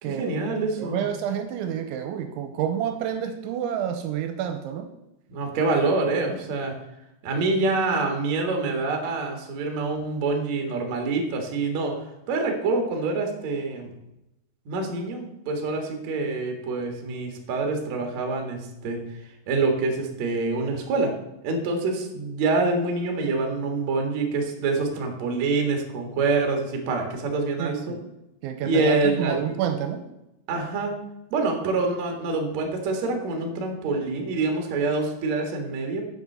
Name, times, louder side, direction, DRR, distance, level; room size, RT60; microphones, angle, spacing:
voice 1, 0.0-1.1 5.3-6.7 7.2-12.0 12.3-13.9 14.7-19.0 19.5-21.1 21.4-27.9 28.6-29.6 30.5-30.9 31.3-36.0, right 3 dB, 65° right, 3 dB, 1.7 m, -26 dB
voice 2, 0.8-4.9 27.6-28.0 28.4-30.0, right 9 dB, 80° right, 7 dB, 2.9 m, -29 dB
7.6 x 7.1 x 6.7 m, 0.91 s
omnidirectional pair, 5.7 m